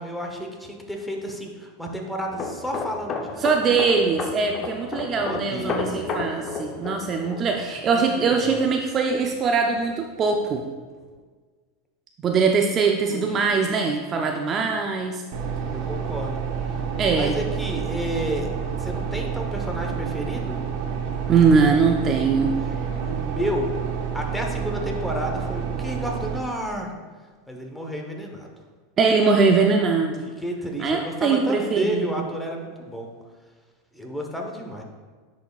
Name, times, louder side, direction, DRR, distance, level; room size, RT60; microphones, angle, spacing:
voice 1, 0.0-3.4 5.1-6.1 7.8-8.6 13.1-13.4 14.1-14.3 14.6-14.8 15.7-16.4 16.7-16.8 17.1-18.5 18.8-20.6 23.1-23.9 24.1-26.9 27.5-28.5 30.2-33.1 33.9-34.8, equal, 5° left, 1 dB, 1.0 m, -31 dB
sound 1, 2.3-9.8 10.1-10.4, left 3 dB, 35° left, 0.7 m, -33 dB
voice 2, 3.4-10.6 12.2-15.2 17.0-17.4 21.3-22.5 29.0-30.2 30.8-32.3, right 5 dB, 35° right, 2 dB, 0.5 m, -21 dB
sound 2, 15.3-26.4, right 7 dB, 65° right, 0.8 m, -29 dB
10.0 x 4.2 x 2.4 m, 1.5 s
hypercardioid pair, 115°, 0 cm